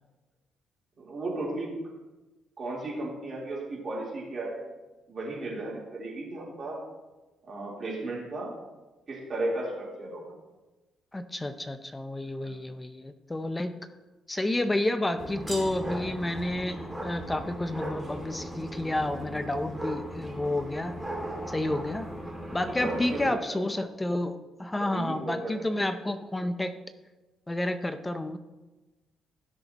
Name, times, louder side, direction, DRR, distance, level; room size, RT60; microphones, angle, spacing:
voice 1, 1.0-1.7 2.6-4.6 5.1-6.8 7.4-8.5 9.1-10.2 12.4-12.6 21.6-21.8 22.6-23.6 24.8-25.5, right 2 dB, 45° right, -4 dB, 3.5 m, -35 dB
voice 2, 11.1-13.7 14.3-21.0 21.5-22.1 22.5-26.8 27.5-28.4, left 1 dB, 15° left, 10 dB, 0.6 m, -30 dB
sound 1, 15.2-23.3, right 1 dB, 10° right, 2.4 m, -38 dB
16.5 x 6.5 x 2.9 m, 1.1 s
cardioid pair, 90°, 0 cm